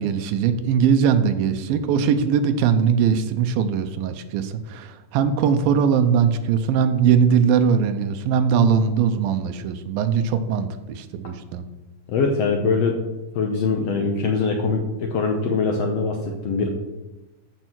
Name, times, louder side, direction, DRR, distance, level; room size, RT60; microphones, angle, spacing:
voice 1, 0.0-11.6, right 7 dB, 85° right, 9 dB, 2.5 m, -20 dB
voice 2, 12.1-13.0 13.3-16.7, left 4 dB, 80° left, 3 dB, 1.4 m, -22 dB
13.5 x 5.5 x 6.1 m, 1.1 s
omnidirectional pair, 4.2 m